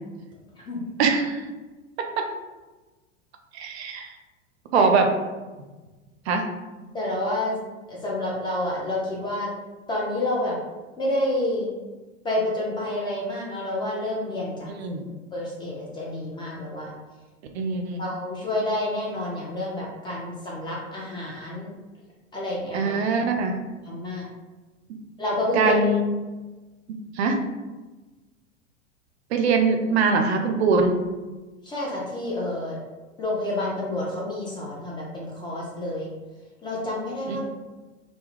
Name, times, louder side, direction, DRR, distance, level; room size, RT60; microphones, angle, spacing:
voice 1, 1.0-1.4 2.2-2.3 3.5-4.2 4.7-5.1 6.3-6.4 14.6-15.0 17.5-18.1 22.7-23.6 25.5-26.1 27.2-27.4 29.3-30.9 37.3-37.4, right 4 dB, 60° right, 4 dB, 0.5 m, -22 dB
voice 2, 6.9-7.6 7.9-9.5 9.9-10.6 11.0-11.7 12.2-14.7 15.3-16.9 18.0-21.7 22.3-22.9 23.9-24.2 25.2-25.8 31.6-32.8 33.2-36.1 36.6-37.4, left 1 dB, 15° left, -5 dB, 0.3 m, -29 dB
2.2 x 2.1 x 3.1 m, 1.2 s
figure-of-eight pair, 85°, 37 cm